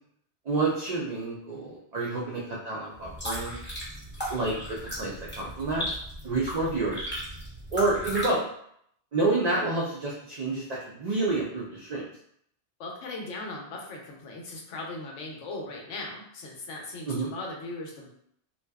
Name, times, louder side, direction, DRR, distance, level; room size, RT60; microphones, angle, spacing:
voice 1, 0.5-3.6 4.3-4.5 4.8-5.8 6.2-7.0 7.7-8.4 9.1-12.0 17.1-17.3, right 3 dB, 65° right, -4 dB, 0.4 m, -28 dB
sound 1, 2.9-8.3, equal, 10° left, 0.8 m, -36 dB
voice 2, 12.8-18.1, left 2 dB, 85° left, 0 dB, 1.0 m, -38 dB
2.6 x 2.3 x 2.2 m, 0.70 s
omnidirectional pair, 1.2 m